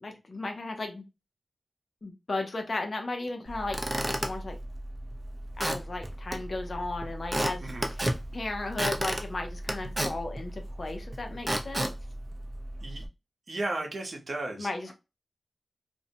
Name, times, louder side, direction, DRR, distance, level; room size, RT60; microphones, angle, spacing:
voice 1, 0.0-1.0 2.0-4.6 5.6-7.7 8.0-11.9 14.6-14.9, left 2 dB, 50° left, 4 dB, 0.6 m, -35 dB
Squeak / Wood, 3.5-13.1, right 1 dB, 25° right, 0.5 m, -34 dB
voice 2, 13.5-14.7, right 2 dB, 65° right, 2 dB, 0.8 m, -34 dB
2.6 x 2.1 x 2.6 m, 0.27 s
wide cardioid pair, 75°, 0 cm